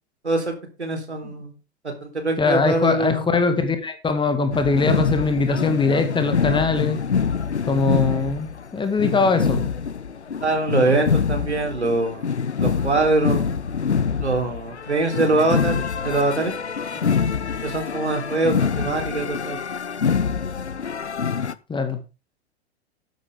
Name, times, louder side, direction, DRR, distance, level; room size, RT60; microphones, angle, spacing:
voice 1, 0.8-1.5 2.0-3.2 10.4-12.3 12.6-13.5 14.2-16.5 17.6-19.6, right 2 dB, 85° right, 4 dB, 3.9 m, -23 dB
voice 2, 2.4-7.0 7.7-9.7 17.0-17.2 21.7-22.0, left 4 dB, 15° left, 8 dB, 2.0 m, -22 dB
sound 1, 4.5-21.5, left 6 dB, 90° left, 0.8 m, -25 dB
12.5 x 10.5 x 3.7 m, 0.30 s
figure-of-eight pair, 100°, 33 cm